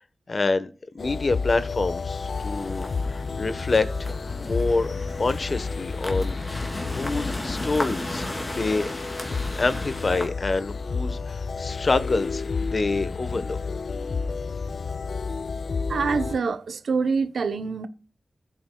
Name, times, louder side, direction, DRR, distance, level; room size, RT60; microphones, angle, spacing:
voice 1, 0.3-0.7 0.9-4.1 4.4-4.9 5.2-8.9 9.6-13.6, left 3 dB, 55° left, 1.1 m, -27 dB
sound 1, 1.0-16.4, left 4 dB, 70° left, 0.4 m, -31 dB
sound 2, 1.8-10.3, left 1 dB, 30° left, 2.9 m, -35 dB
voice 2, 15.8-17.9, right 5 dB, 85° right, 0.8 m, -25 dB
15.0 x 8.7 x 2.3 m
cardioid pair, 60°, 0 cm